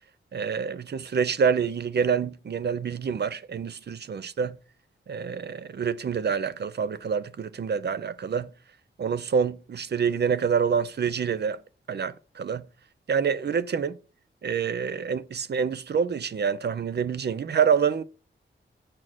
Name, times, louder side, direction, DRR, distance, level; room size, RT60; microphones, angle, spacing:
voice 1, 0.3-4.6 5.1-8.5 9.0-11.6 11.9-12.7 13.1-14.0 14.4-18.0, right 6 dB, 55° right, 0.6 m, -27 dB
7.4 x 4.4 x 6.1 m
wide cardioid pair, 125°, 20 cm